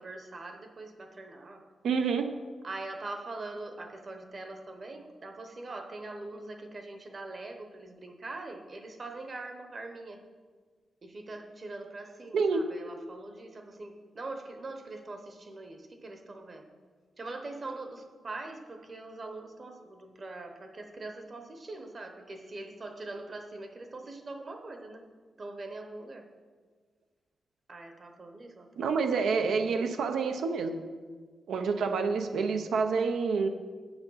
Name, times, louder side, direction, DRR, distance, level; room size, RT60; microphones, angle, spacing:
voice 1, 0.0-1.7 2.6-10.2 11.0-16.6 17.2-25.1 25.4-26.3 27.7-28.9, right 2 dB, 35° right, 6 dB, 0.8 m, -42 dB
voice 2, 1.8-2.3 12.3-12.6 28.8-30.8 31.5-33.5, right 5 dB, 90° right, 7 dB, 0.6 m, -28 dB
7.8 x 6.9 x 5.6 m, 1.5 s
wide cardioid pair, 155°, 0 cm